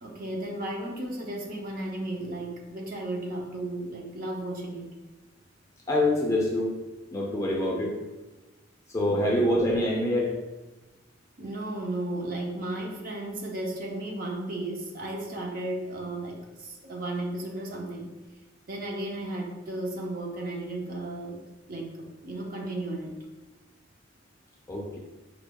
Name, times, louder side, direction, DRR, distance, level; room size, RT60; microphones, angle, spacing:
voice 1, 0.0-4.9 9.1-9.4 11.4-18.1 18.7-21.4 21.7-23.2, right 1 dB, 45° right, 0 dB, 0.6 m, -34 dB
voice 2, 5.9-6.7 7.1-7.9 8.9-10.3 24.7-25.0, left 1 dB, 15° left, -2 dB, 0.6 m, -25 dB
5.0 x 3.2 x 2.3 m, 1.1 s
head